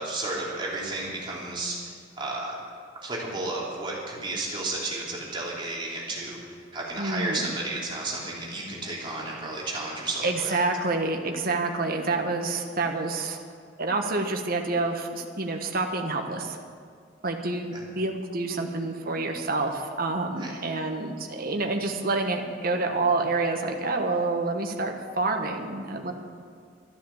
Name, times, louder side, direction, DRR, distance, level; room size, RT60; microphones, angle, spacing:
voice 1, 0.0-2.5 3.0-6.4 6.7-10.5 17.7-17.8 20.4-20.5, right 2 dB, 25° right, -4 dB, 3.1 m, -32 dB
voice 2, 7.0-7.5 10.2-13.4 13.8-16.6 17.2-26.1, right 3 dB, 50° right, 3 dB, 1.4 m, -28 dB
13.0 x 11.5 x 7.2 m, 2.2 s
head